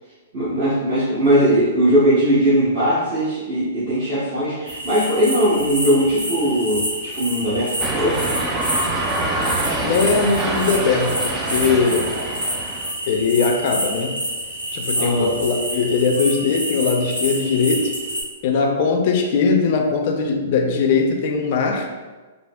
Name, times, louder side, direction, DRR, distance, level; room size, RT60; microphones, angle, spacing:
voice 1, 0.3-8.2 14.9-15.3, equal, 45° right, -12 dB, 1.1 m, -19 dB
sound 1, 4.7-18.2, equal, 90° right, 0.9 m, -28 dB
sound 2, 7.8-12.9, right 2 dB, 20° right, 0.4 m, -25 dB
voice 2, 9.8-12.1 13.1-14.2 14.7-17.9 18.4-21.9, left 4 dB, 50° left, 2 dB, 0.5 m, -20 dB
4.8 x 2.0 x 2.3 m, 1.3 s
figure-of-eight pair, 115°, 0 cm